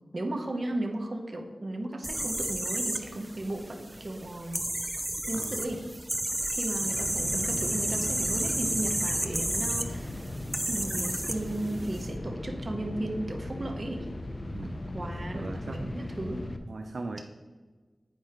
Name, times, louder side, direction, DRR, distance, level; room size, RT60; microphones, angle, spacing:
voice 1, 0.1-5.0 5.3-5.8 6.4-10.3 10.7-14.1 14.6-16.4, right 1 dB, 45° right, 2 dB, 1.0 m, -35 dB
sound 1, 2.0-12.0, right 1 dB, 20° right, 0.6 m, -32 dB
sound 2, 6.8-16.6, left 1 dB, 45° left, 0.7 m, -38 dB
voice 2, 14.5-14.9 15.3-16.1 16.7-17.2, right 3 dB, 65° right, 5 dB, 0.5 m, -39 dB
8.5 x 4.7 x 4.4 m, 1.3 s
cardioid pair, 50°, 0 cm